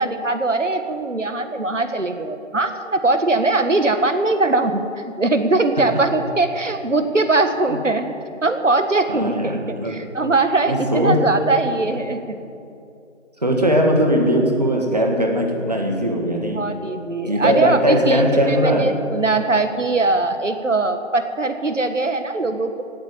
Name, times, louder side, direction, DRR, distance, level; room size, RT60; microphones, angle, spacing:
voice 1, 0.0-4.8 5.2-8.1 8.4-12.4 16.5-22.8, right 2 dB, 75° right, 8 dB, 1.6 m, -21 dB
voice 2, 9.1-10.0 10.7-11.2 13.4-16.6 17.3-18.9, equal, 30° right, 1 dB, 1.8 m, -19 dB
17.5 x 7.9 x 9.0 m, 2.6 s
figure-of-eight pair, 175°, 38 cm